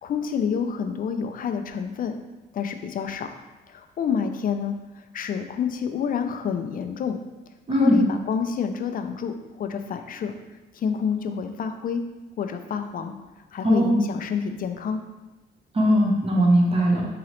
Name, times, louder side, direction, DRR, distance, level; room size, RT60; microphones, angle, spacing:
voice 1, 0.0-2.1 2.5-3.3 3.7-4.8 5.1-7.2 7.7-10.3 10.7-12.0 12.4-13.1 13.5-15.0, left 7 dB, 45° left, 7 dB, 0.4 m, -28 dB
voice 2, 7.7-8.0 13.6-14.0 15.7-17.1, right 1 dB, 30° right, -1 dB, 0.8 m, -19 dB
3.8 x 2.9 x 3.1 m, 1.1 s
cardioid pair, 90°, 20 cm